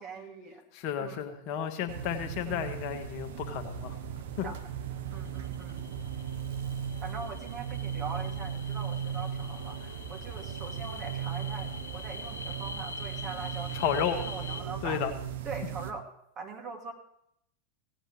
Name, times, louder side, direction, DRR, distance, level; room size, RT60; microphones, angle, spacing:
voice 1, 0.0-0.6 1.0-1.2 2.5-2.8 4.4-4.6 5.1-5.9 7.0-15.1 15.4-16.1 16.4-16.9, right 4 dB, 35° right, 1 dB, 2.4 m, -42 dB
voice 2, 0.7-4.0 4.4-4.5 13.7-14.2 14.8-15.1, left 8 dB, 50° left, 7 dB, 1.2 m, -32 dB
sound 1, 1.9-15.9, right 8 dB, 65° right, 0.9 m, -37 dB
sound 2, 5.2-14.6, left 4 dB, 70° left, 1.2 m, -45 dB
17.0 x 8.9 x 3.3 m, 0.74 s
figure-of-eight pair, 90°, 0 cm